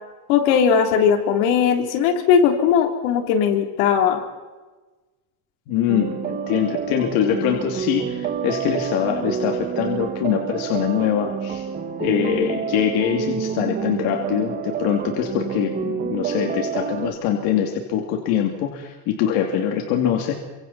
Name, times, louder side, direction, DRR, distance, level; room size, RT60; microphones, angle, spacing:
voice 1, 0.3-4.2, left 7 dB, 70° left, 4 dB, 3.4 m, -18 dB
voice 2, 5.7-11.6 12.0-20.4, left 9 dB, 55° left, 2 dB, 2.6 m, -23 dB
sound 1, 5.9-17.1, right 7 dB, 20° right, 1.2 m, -28 dB
28.5 x 25.5 x 4.2 m, 1.2 s
cardioid pair, 165°, 43 cm